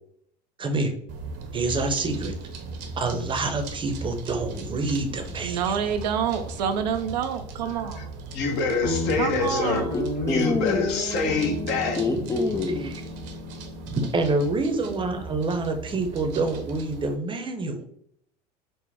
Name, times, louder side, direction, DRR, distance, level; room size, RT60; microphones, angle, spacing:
voice 1, 0.6-0.9 1.5-2.3 3.0-5.9 12.8-12.9 13.9-17.9, right 3 dB, 25° right, 0.7 m, -27 dB
sound 1, 1.1-17.1, right 3 dB, 55° right, 0.8 m, -39 dB
voice 2, 5.4-8.1 9.2-10.0, right 8 dB, 85° right, 0.5 m, -27 dB
voice 3, 8.3-9.9 10.2-12.0, left 4 dB, 55° left, 0.9 m, -26 dB
Guitar, 8.8-15.5, left 1 dB, 85° left, 1.2 m, -34 dB
voice 4, 9.9-10.9 12.0-12.9, left 3 dB, 15° left, 0.4 m, -26 dB
4.1 x 2.1 x 3.4 m
hypercardioid pair, 85°, 21 cm